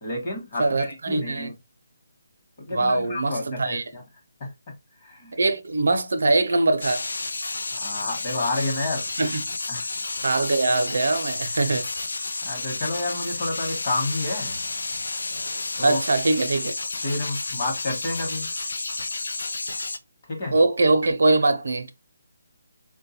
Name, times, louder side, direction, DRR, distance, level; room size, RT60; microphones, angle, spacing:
voice 1, 0.0-1.5 2.6-4.0 4.4-4.5 5.0-5.3 7.7-9.1 9.7-9.9 12.4-14.6 15.8-16.0 17.0-18.5 20.3-20.6, left 2 dB, 25° left, 0.9 m, -30 dB
voice 2, 0.6-1.5 2.7-3.8 5.4-7.1 9.2-9.4 10.2-11.9 15.8-16.7 20.5-21.9, right 2 dB, 65° right, 0.5 m, -22 dB
sound 1, 6.8-20.0, left 3 dB, 70° left, 0.5 m, -31 dB
4.3 x 2.2 x 2.8 m
hypercardioid pair, 180°, 0 cm